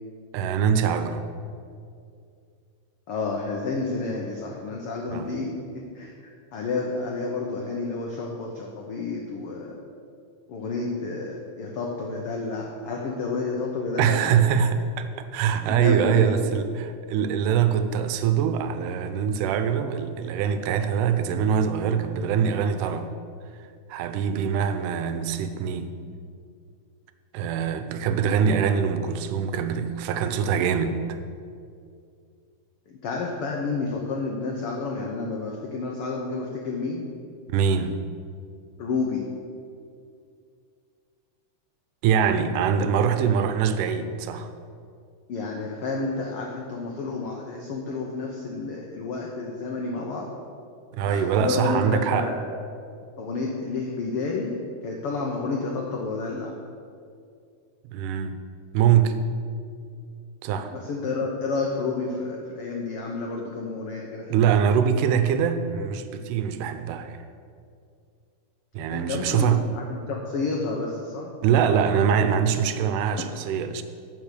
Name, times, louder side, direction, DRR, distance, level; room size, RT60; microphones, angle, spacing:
voice 1, 0.3-1.3 5.1-5.3 14.0-23.1 23.9-25.9 27.3-31.2 37.5-38.0 42.0-44.5 50.9-52.3 57.9-58.4 58.7-59.2 60.4-60.7 64.3-67.2 68.7-69.7 71.4-73.8, right 7 dB, 85° right, 9 dB, 2.2 m, -23 dB
voice 2, 3.1-5.5 5.7-6.1 6.5-9.8 10.5-14.4 15.6-16.5 32.9-37.1 38.8-39.3 45.3-50.3 51.0-52.4 53.2-54.6 54.8-56.5 60.7-64.7 68.9-71.3, left 3 dB, 80° left, 0 dB, 1.2 m, -30 dB
11.0 x 5.1 x 6.7 m, 2.4 s
omnidirectional pair, 3.7 m